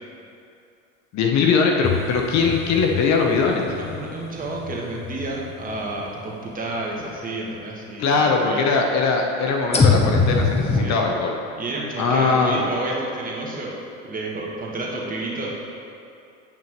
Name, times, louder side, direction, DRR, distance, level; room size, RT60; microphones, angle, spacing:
voice 1, 1.1-3.7 8.0-11.4 12.0-12.7, left 4 dB, 50° left, 2 dB, 0.9 m, -21 dB
sound 1, 1.8-6.1 6.7-6.8 9.7-10.8, left 4 dB, 15° left, 0.7 m, -23 dB
voice 2, 3.7-8.6 10.7-11.0 11.6-13.7 14.0-15.5, right 2 dB, 25° right, -3 dB, 1.4 m, -30 dB
9.0 x 5.9 x 3.0 m, 2.6 s
hypercardioid pair, 90°, 36 cm